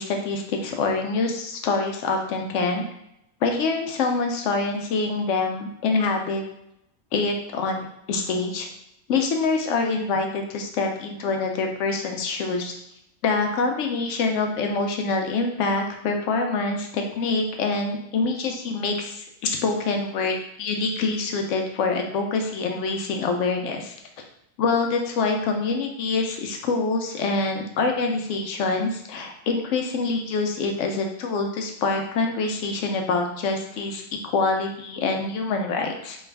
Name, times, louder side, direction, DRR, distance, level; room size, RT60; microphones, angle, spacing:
voice 1, 0.0-2.8 3.4-6.4 7.1-7.8 8.1-8.7 9.1-12.7 13.2-23.9 24.6-34.0 34.3-36.2, left 3 dB, 85° left, 3 dB, 0.9 m, -25 dB
3.2 x 2.3 x 3.3 m, 0.79 s
omnidirectional pair, 1.3 m